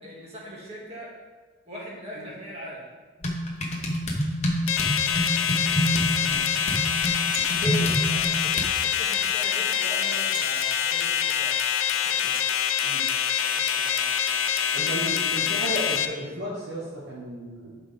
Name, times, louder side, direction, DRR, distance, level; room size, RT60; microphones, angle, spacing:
voice 1, 0.0-1.1 1.7-3.0 8.1-11.6 13.5-14.1, equal, 30° right, -6 dB, 2.2 m, -41 dB
sound 1, 3.2-8.8, equal, 30° left, 1.0 m, -28 dB
sound 2, 4.6-4.7 5.6-5.9 6.9-7.0 7.1-7.5 9.4-9.5 9.8-10.5 11.8-11.9 12.2-12.4 13.4-13.6, right 4 dB, 80° right, 2.2 m, -43 dB
sound 3, 4.7-16.1, left 9 dB, 70° left, 0.6 m, -25 dB
voice 2, 5.6-6.5 7.6-7.9 12.1-12.2 12.8-13.0 14.7-17.8, equal, 50° right, -8 dB, 1.6 m, -34 dB
11.5 x 5.1 x 3.6 m, 1.4 s
head